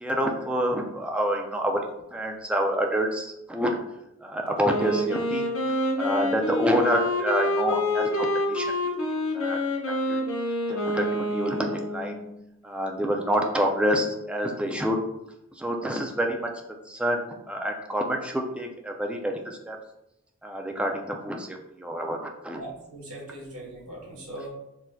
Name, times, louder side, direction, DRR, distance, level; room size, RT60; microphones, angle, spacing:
voice 1, 0.0-1.9 2.1-3.8 4.2-5.4 6.0-8.7 9.0-9.1 9.3-9.6 10.1-10.2 10.7-12.2 12.6-15.0 15.6-16.5 16.9-19.8 20.4-22.6, equal, 5° right, 2 dB, 0.3 m, -27 dB
Wind instrument woodwind instrument, 4.6-12.4, left 1 dB, 65° left, 0.7 m, -27 dB
voice 2, 22.5-24.5, right 1 dB, 80° right, -3 dB, 1.2 m, -40 dB
4.0 x 2.6 x 2.2 m, 0.85 s
head